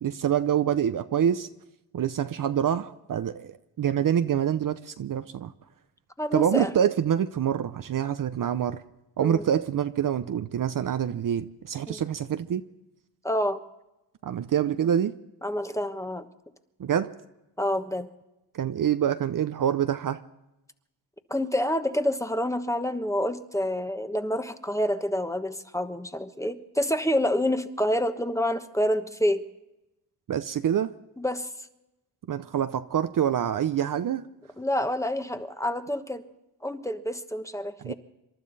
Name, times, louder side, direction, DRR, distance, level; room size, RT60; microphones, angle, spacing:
voice 1, 0.0-1.5 1.9-5.5 6.3-8.8 9.2-12.6 14.2-15.1 16.8-17.1 18.5-20.2 30.3-30.9 32.3-34.2 37.8-37.9, right 9 dB, 45° right, 11 dB, 0.7 m, -26 dB
voice 2, 6.2-6.7 9.2-9.4 11.9-12.0 13.2-13.6 15.4-16.3 17.6-18.1 21.3-29.4 31.2-31.5 34.6-36.2 36.6-37.9, left 1 dB, 5° left, 9 dB, 1.2 m, -28 dB
27.5 x 12.0 x 4.1 m, 0.92 s
cardioid pair, 85°, 45 cm